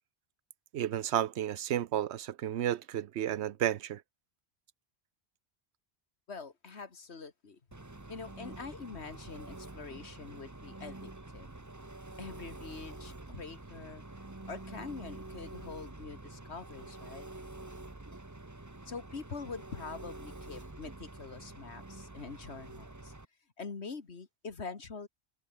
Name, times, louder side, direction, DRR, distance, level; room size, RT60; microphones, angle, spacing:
voice 1, 0.7-4.0, right 11 dB, 85° right, 1.0 m, -32 dB
voice 2, 6.3-7.6 8.1-11.5 12.2-14.0 14.5-17.3 18.9-23.1 23.6-25.1, left 4 dB, 85° left, 2.2 m, -44 dB
Engine, 7.7-23.2, right 2 dB, 15° right, 1.2 m, -47 dB
omnidirectional pair, 1.1 m